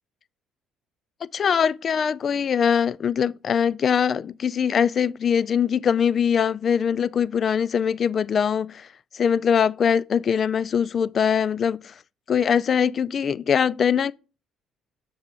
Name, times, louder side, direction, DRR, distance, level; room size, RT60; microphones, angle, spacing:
voice 1, 1.3-8.9 9.1-11.9 12.3-14.1, left 7 dB, 50° left, 0.3 m, -22 dB
7.2 x 5.6 x 3.6 m
hypercardioid pair, 60°, 0 cm